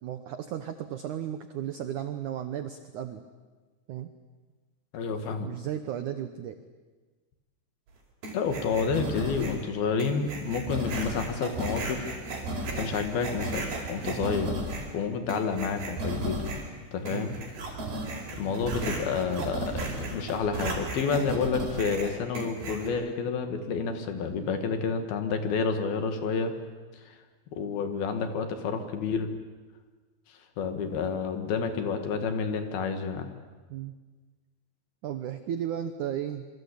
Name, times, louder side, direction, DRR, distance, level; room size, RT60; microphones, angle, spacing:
voice 1, 0.0-3.2 3.9-4.1 5.4-6.6 14.0-14.3 17.1-17.4 33.7-33.9 35.0-36.5, right 10 dB, 75° right, 9 dB, 1.8 m, -35 dB
voice 2, 4.9-5.5 8.3-12.1 12.8-14.6 14.9-16.4 16.9-17.4 18.3-26.5 27.1-27.2 27.5-29.3 30.6-33.3, left 5 dB, 65° left, 7 dB, 3.6 m, -29 dB
sound 1, 8.2-9.6 10.0-14.9 15.3-16.7 17.1-22.9, right 1 dB, 60° right, 6.6 m, -34 dB
27.0 x 24.0 x 8.5 m, 1.3 s
omnidirectional pair, 5.0 m